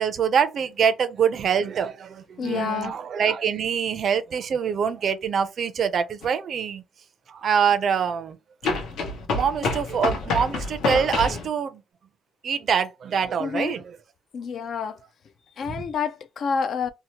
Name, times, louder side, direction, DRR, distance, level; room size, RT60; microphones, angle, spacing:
voice 1, 0.0-6.8 7.3-8.4 9.3-11.8 12.4-14.0 15.7-15.8, right 7 dB, 45° right, 0.4 m, -24 dB
voice 2, 2.4-3.0 13.4-13.8 14.3-15.0 15.6-16.9, left 6 dB, 50° left, 0.3 m, -28 dB
sound 1, 6.2-6.3 8.6-11.5, left 3 dB, 80° left, 0.9 m, -27 dB
2.8 x 2.0 x 2.8 m
cardioid pair, 150°, 0 cm